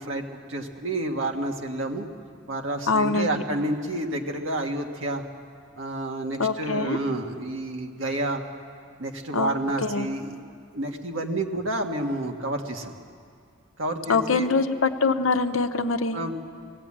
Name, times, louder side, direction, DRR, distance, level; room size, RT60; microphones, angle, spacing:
voice 1, 0.0-2.0 2.5-5.2 5.8-8.4 9.0-10.5 10.7-12.9 13.8-14.5 16.1-16.3, right 1 dB, 65° right, 2 dB, 1.7 m, -29 dB
voice 2, 2.9-3.4 6.4-7.0 9.3-9.6 9.8-10.1 14.1-16.2, left 4 dB, 75° left, 9 dB, 0.8 m, -24 dB
20.0 x 16.0 x 8.7 m, 2.2 s
head